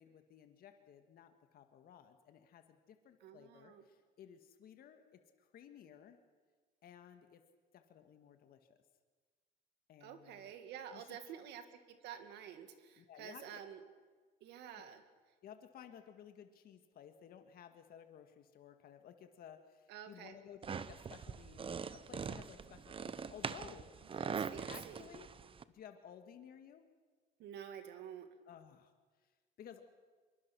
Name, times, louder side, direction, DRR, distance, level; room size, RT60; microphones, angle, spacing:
voice 1, 0.0-6.2 6.8-7.4 7.7-8.8 9.9-10.5 10.9-11.4 13.0-13.6 14.8-14.9 15.4-24.3 24.7-25.3 25.7-26.9 28.5-28.9 29.6-29.9, left 9 dB, 60° left, 7 dB, 1.8 m, -56 dB
voice 2, 3.2-3.8 10.0-13.8 14.4-15.0 19.9-20.4 24.2-25.0 27.4-28.3, right 9 dB, 80° right, 8 dB, 2.2 m, -50 dB
sound 1, 20.6-25.6, right 6 dB, 30° right, 0.8 m, -43 dB
24.0 x 23.0 x 6.2 m, 1.4 s
cardioid pair, 110°, 17 cm